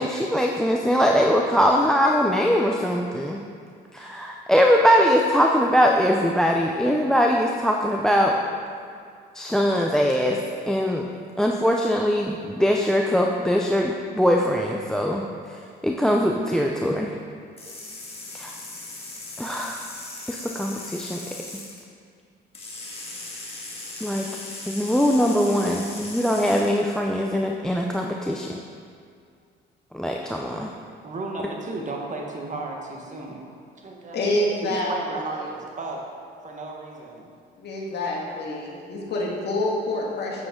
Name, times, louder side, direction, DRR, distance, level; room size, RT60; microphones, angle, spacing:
voice 1, 0.0-3.4 3.9-8.4 9.3-10.4 10.6-11.1 11.4-15.2 15.8-17.1 18.3-18.6 19.4-19.8 20.3-21.2 24.0-24.3 24.7-28.6 29.9-30.7, equal, 5° left, 1 dB, 0.5 m, -21 dB
sound 1, 17.6-21.8 22.5-26.8, left 2 dB, 30° left, 1.8 m, -38 dB
voice 2, 31.0-33.5 33.8-34.2 34.6-36.0 36.4-37.3, right 3 dB, 40° right, 0 dB, 1.4 m, -34 dB
voice 3, 34.1-35.2 37.6-40.5, left 1 dB, 60° left, -2 dB, 1.8 m, -27 dB
8.5 x 7.4 x 3.8 m, 2.2 s
cardioid pair, 90°, 20 cm